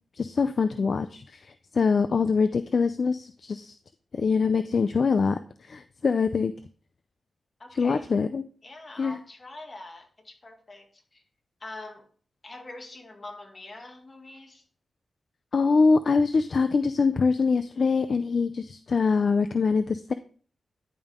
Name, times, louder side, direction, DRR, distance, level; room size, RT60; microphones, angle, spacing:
voice 1, 0.1-3.7 4.1-6.5 7.8-8.4 9.0-9.2 15.5-20.1, left 4 dB, 60° left, 0.4 m, -24 dB
voice 2, 7.6-8.1 8.6-11.2 11.6-12.1 12.4-14.6, left 2 dB, 40° left, 2.1 m, -44 dB
11.0 x 5.3 x 3.6 m
cardioid pair, 70°, 0 cm